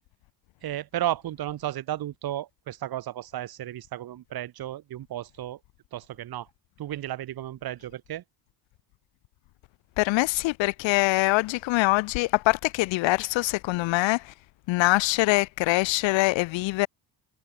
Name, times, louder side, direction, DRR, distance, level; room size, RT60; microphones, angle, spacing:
voice 1, 0.6-5.6 5.9-6.5 6.8-8.2, right 12 dB, 55° right, 2.1 m, -33 dB
voice 2, 10.0-14.3 14.7-16.9, left 21 dB, 90° left, 0.6 m, -24 dB
cardioid pair, 175°, 44 cm